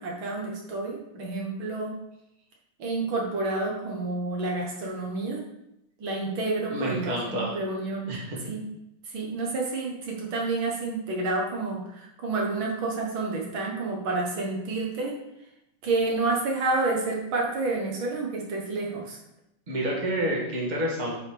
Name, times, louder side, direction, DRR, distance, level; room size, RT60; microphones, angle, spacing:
voice 1, 0.0-2.0 2.8-5.4 6.0-8.2 8.4-8.6 9.0-15.1 15.8-19.2, right 3 dB, 50° right, -1 dB, 1.9 m, -29 dB
voice 2, 6.7-7.6 8.1-8.4 19.7-21.2, right 1 dB, 20° right, -3 dB, 1.4 m, -29 dB
8.1 x 4.1 x 5.1 m, 0.85 s
omnidirectional pair, 3.3 m